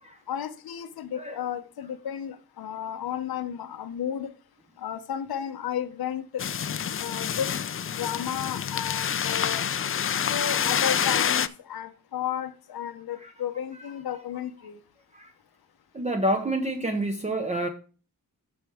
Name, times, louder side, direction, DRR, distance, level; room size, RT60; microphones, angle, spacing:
voice 1, 0.3-4.3 4.8-6.4 7.0-7.5 7.9-9.7 10.3-14.8, left 9 dB, 80° left, 0.8 m, -33 dB
sound 1, 6.4-11.5, left 8 dB, 40° left, 0.4 m, -27 dB
voice 2, 15.9-17.7, right 1 dB, 20° right, 0.7 m, -28 dB
13.0 x 4.5 x 3.5 m
wide cardioid pair, 105°, 36 cm